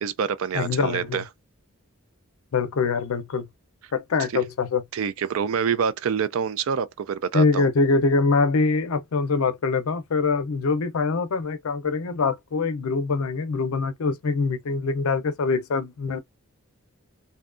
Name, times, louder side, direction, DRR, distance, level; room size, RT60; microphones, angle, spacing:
voice 1, 0.0-1.2 4.3-4.4 4.9-7.6, right 7 dB, 65° right, 0.4 m, -26 dB
voice 2, 0.5-1.2 2.5-3.5 3.9-4.8 7.3-16.2, left 4 dB, 75° left, 0.5 m, -24 dB
2.6 x 2.2 x 2.4 m
head